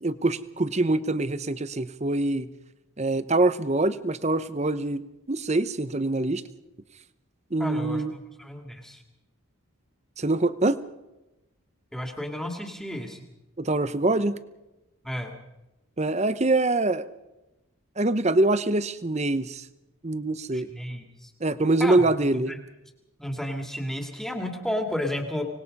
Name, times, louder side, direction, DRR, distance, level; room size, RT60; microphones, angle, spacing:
voice 1, 0.0-2.5 3.0-5.0 5.3-6.4 7.5-8.1 10.2-10.8 13.6-14.4 16.0-17.1 18.0-19.6 20.0-20.7 21.4-22.5, right 2 dB, 30° right, 14 dB, 0.9 m, -24 dB
voice 2, 7.6-8.0 8.4-9.0 11.9-13.2 15.0-15.3 20.5-21.0 21.8-22.0 22.5-22.6 23.2-25.4, left 1 dB, ahead, 4 dB, 2.5 m, -32 dB
25.0 x 20.0 x 5.4 m, 0.98 s
head